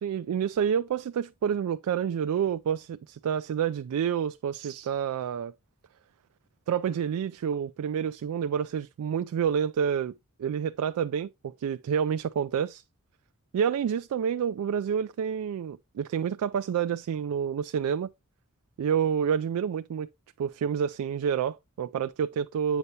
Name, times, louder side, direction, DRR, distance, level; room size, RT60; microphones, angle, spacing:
voice 1, 0.0-5.5 6.7-10.1 10.4-12.8 13.5-18.1 18.8-20.1 20.4-22.8, right 8 dB, 85° right, 0.3 m, -28 dB
8.1 x 5.4 x 2.8 m
head